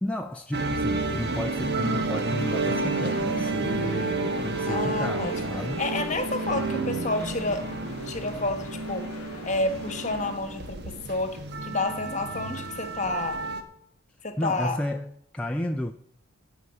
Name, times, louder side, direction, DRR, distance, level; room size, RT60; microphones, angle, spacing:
voice 1, 0.0-5.8 14.4-15.9, left 1 dB, 5° left, 0.4 m, -32 dB
sound 1, 0.5-13.6, right 3 dB, 50° right, 1.2 m, -30 dB
sound 2, 2.2-10.4, left 4 dB, 90° left, 0.6 m, -42 dB
voice 2, 4.7-5.3 5.8-7.6 8.0-9.1 9.4-13.4 14.2-14.8, left 2 dB, 35° left, 1.3 m, -30 dB
14.0 x 4.8 x 8.2 m
head